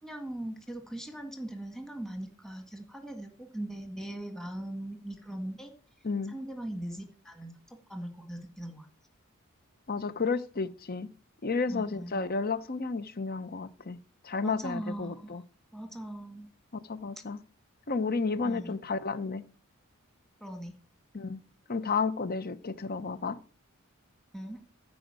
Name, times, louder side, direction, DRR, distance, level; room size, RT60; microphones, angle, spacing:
voice 1, 0.0-5.7 6.3-8.9 11.7-12.2 14.4-15.4 15.7-16.5 18.4-18.8 20.4-20.8 24.3-24.6, right 1 dB, ahead, 1.8 m, -40 dB
voice 2, 9.9-11.1 11.4-14.0 14.2-15.4 16.7-17.4 17.9-19.4 21.1-21.4 21.7-23.4, left 4 dB, 45° left, 0.8 m, -32 dB
14.5 x 5.0 x 7.6 m
head